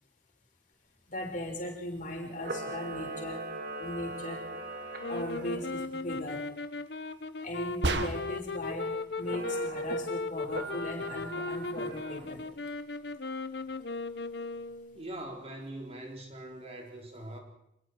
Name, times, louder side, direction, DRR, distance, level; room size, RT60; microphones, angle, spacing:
voice 1, 1.1-3.4 3.8-4.4 5.1-6.4 7.4-8.9 9.2-12.4, left 1 dB, 45° left, 1 dB, 5.9 m, -38 dB
Camera, 2.3-5.6 9.2-10.0 10.5-12.3, right 2 dB, 50° right, 2.7 m, -40 dB
sound 1, 5.0-15.0, left 3 dB, 60° left, 1.1 m, -37 dB
sound 2, 7.8-8.6, right 2 dB, 65° right, 1.5 m, -30 dB
voice 2, 14.9-17.4, right 1 dB, 35° right, 2 dB, 4.0 m, -42 dB
26.5 x 22.0 x 4.7 m, 0.79 s
head